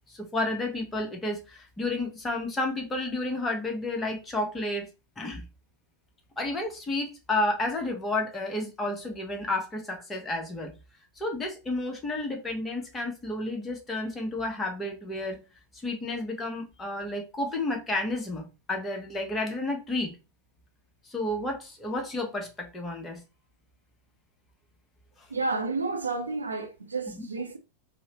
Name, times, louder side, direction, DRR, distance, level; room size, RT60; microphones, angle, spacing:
voice 1, 0.0-4.9 5.2-5.5 6.4-10.8 11.2-15.4 15.8-20.2 21.0-23.2 27.1-27.2, left 2 dB, 15° left, 0.8 m, -31 dB
voice 2, 25.3-27.6, right 3 dB, 75° right, 0.5 m, -31 dB
2.9 x 2.1 x 2.9 m
figure-of-eight pair, 90°, 0 cm